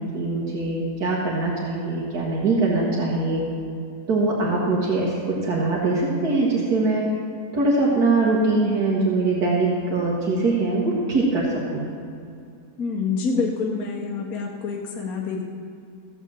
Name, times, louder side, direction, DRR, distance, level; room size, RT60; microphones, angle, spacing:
voice 1, 0.0-3.4 4.1-7.0 7.5-11.5 11.7-11.9, right 3 dB, 80° right, -5 dB, 2.2 m, -22 dB
voice 2, 12.8-15.4, left 4 dB, 70° left, 0 dB, 1.5 m, -27 dB
15.0 x 6.5 x 7.6 m, 2.4 s
omnidirectional pair, 1.7 m